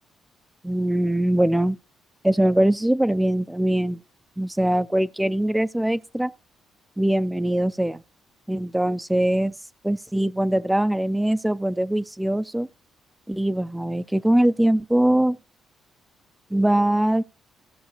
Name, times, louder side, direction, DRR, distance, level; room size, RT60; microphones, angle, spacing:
voice 1, 0.6-1.8 2.2-4.0 4.4-6.3 7.0-8.0 8.5-9.5 9.8-12.7 13.3-15.4 16.5-17.2, right 1 dB, 5° right, 0.5 m, -22 dB
17.5 x 6.3 x 3.0 m
cardioid pair, 90°, 0 cm